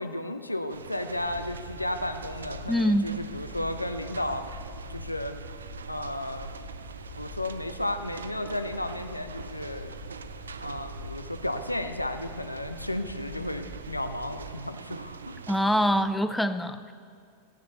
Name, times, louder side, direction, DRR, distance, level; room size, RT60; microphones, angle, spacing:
voice 1, 0.0-4.5 4.9-5.4 5.9-6.5 7.2-10.0 10.6-15.4, left 1 dB, 85° left, 8 dB, 0.5 m, -33 dB
sound 1, 0.7-16.0, right 6 dB, 70° right, 0.4 m, -43 dB
sound 2, 1.2-14.6, left 2 dB, 30° left, 3.6 m, -44 dB
voice 2, 2.7-3.1 15.5-16.9, equal, 5° left, 11 dB, 0.4 m, -24 dB
15.5 x 9.3 x 4.1 m, 2.2 s
figure-of-eight pair, 90°, 0 cm